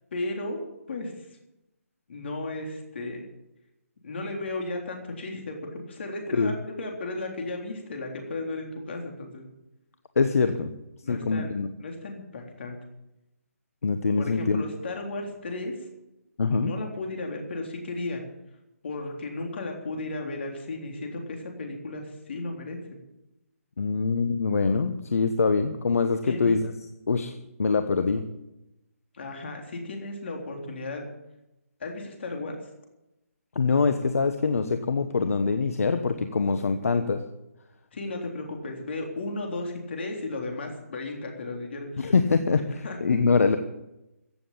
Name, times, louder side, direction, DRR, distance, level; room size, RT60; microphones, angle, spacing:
voice 1, 0.1-0.6 0.9-1.1 2.1-3.2 4.0-9.5 11.0-11.5 11.8-12.8 14.2-15.9 16.5-18.2 18.8-22.8 26.3-26.5 29.1-31.1 31.8-32.6 37.9-42.1 42.8-43.0, left 2 dB, 45° left, 2 dB, 3.6 m, -34 dB
voice 2, 10.2-10.7 11.1-11.7 13.8-14.6 16.4-16.7 23.8-26.7 27.1-27.3 27.6-28.2 33.5-37.2 42.0-43.6, left 4 dB, 70° left, 8 dB, 1.1 m, -24 dB
15.5 x 7.8 x 8.6 m, 0.93 s
hypercardioid pair, 170°, 8 cm